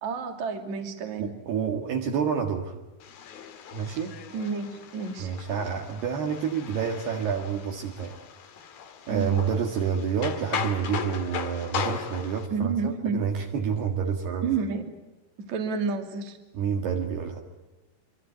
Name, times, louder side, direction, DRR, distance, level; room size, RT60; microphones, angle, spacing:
voice 1, 0.0-1.3 4.3-5.3 9.1-9.4 12.5-13.2 14.4-14.8 15.4-16.4, right 5 dB, 40° right, 5 dB, 3.5 m, -30 dB
voice 2, 1.2-2.8 3.7-4.1 5.2-8.2 9.1-14.6 16.5-17.4, right 7 dB, 60° right, 2 dB, 3.6 m, -28 dB
sound 1, 3.0-12.5, left 7 dB, 55° left, 3.4 m, -37 dB
26.0 x 26.0 x 8.0 m, 1.1 s
omnidirectional pair, 5.6 m